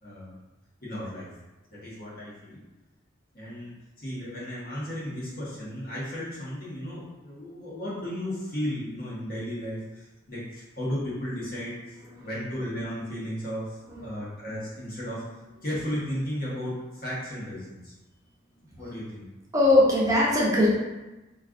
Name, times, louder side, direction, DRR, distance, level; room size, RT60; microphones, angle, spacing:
voice 1, 0.0-0.4 0.8-1.3 1.7-2.6 3.3-15.2 15.6-17.9 18.6-19.3, equal, 50° left, -7 dB, 1.2 m, -34 dB
voice 2, 19.5-20.7, left 1 dB, 15° right, -6 dB, 0.6 m, -21 dB
4.4 x 2.4 x 2.5 m, 1.1 s
head